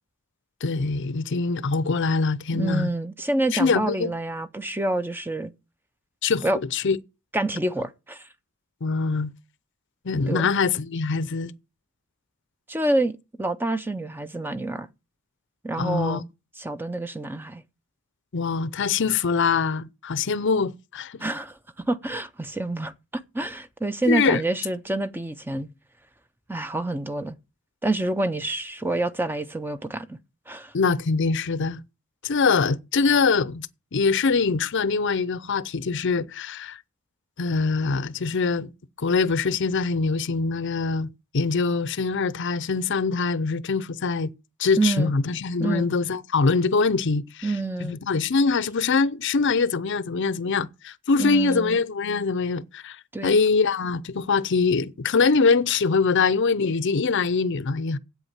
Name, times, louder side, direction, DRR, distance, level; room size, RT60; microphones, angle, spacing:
voice 1, 0.6-2.9 3.5-4.1 6.2-6.4 6.7-7.0 8.8-9.3 10.0-11.5 15.8-16.2 18.3-21.2 24.1-24.4 30.7-31.8 32.2-33.7 33.9-36.8 37.4-38.7 39.0-41.1 41.3-44.3 44.6-47.5 47.8-58.0, left 4 dB, 60° left, 0.6 m, -23 dB
voice 2, 2.5-5.5 6.4-6.6 7.3-8.2 10.3-10.5 12.7-14.9 15.6-16.2 16.6-17.6 21.2-25.7 26.5-27.4 27.8-30.2 30.5-30.7 44.8-45.1 45.6-45.9 47.4-48.0 51.2-51.8 53.1-53.4, right 2 dB, 10° right, 0.6 m, -27 dB
8.4 x 8.1 x 7.3 m
head